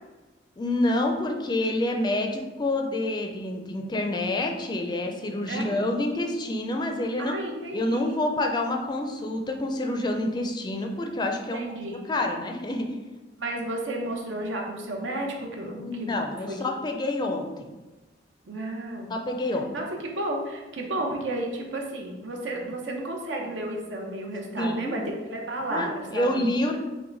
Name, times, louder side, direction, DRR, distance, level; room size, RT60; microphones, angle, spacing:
voice 1, 0.6-7.4 7.7-11.6 12.0-13.0 15.7-17.7 19.1-19.7 24.6-25.0 25.7-26.8, left 1 dB, 25° left, 3 dB, 0.4 m, -28 dB
voice 2, 5.5-5.9 7.2-8.2 11.5-12.1 13.4-16.2 16.5-16.6 18.4-19.1 19.7-26.5, right 1 dB, 80° right, 1 dB, 0.8 m, -32 dB
5.7 x 2.2 x 3.9 m, 1.1 s
head